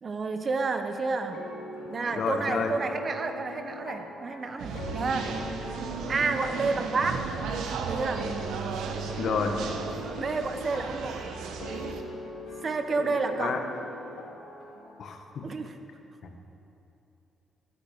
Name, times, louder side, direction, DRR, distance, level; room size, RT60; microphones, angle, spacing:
voice 1, 0.0-1.4 1.9-5.3 6.1-7.3 7.9-8.3 10.2-11.2 12.6-13.6 15.4-15.8, right 4 dB, 40° right, 7 dB, 1.2 m, -30 dB
sound 1, 1.3-15.0, left 2 dB, 90° left, 2.3 m, -42 dB
voice 2, 2.2-2.7 9.2-9.5 13.0-13.6 15.0-15.4, left 6 dB, 60° left, 4 dB, 1.6 m, -30 dB
sound 2, 4.6-12.0, right 5 dB, 80° right, 1.2 m, -35 dB
14.0 x 9.8 x 6.8 m, 3.0 s
cardioid pair, 90°, 0 cm